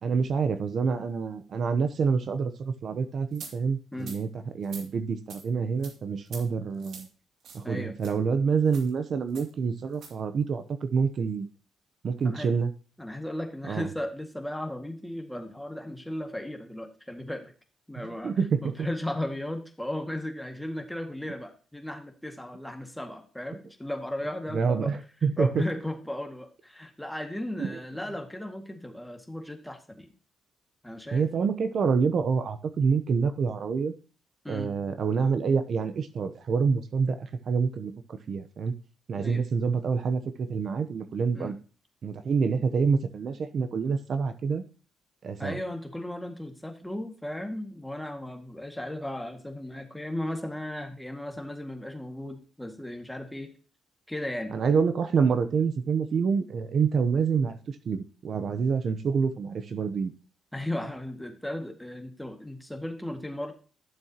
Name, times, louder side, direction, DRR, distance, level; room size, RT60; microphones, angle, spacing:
voice 1, 0.0-4.3 4.5-7.1 7.5-11.5 12.0-12.7 13.7-13.9 18.0-18.7 24.5-25.6 27.6-27.8 31.1-33.9 34.5-38.7 39.1-41.6 42.0-44.6 45.2-45.6 54.5-60.1, right 5 dB, 55° right, 10 dB, 0.8 m, -27 dB
sound 1, 3.3-3.5 4.0-4.2 4.6-4.9 5.3-5.4 5.8-5.9 6.3-6.4 6.8-7.1 7.4-7.6 8.0-8.1 8.7-8.9 9.3-9.5 9.9-10.1, right 5 dB, 70° right, 2.6 m, -44 dB
voice 2, 7.6-8.0 12.2-12.5 13.0-17.5 17.9-24.9 25.4-30.1 30.8-31.2 34.4-34.7 39.2-39.4 41.3-41.6 45.4-53.5 54.1-54.5 60.5-63.5, left 1 dB, 5° left, 5 dB, 1.9 m, -36 dB
12.0 x 7.2 x 2.9 m, 0.37 s
cardioid pair, 90°, 0 cm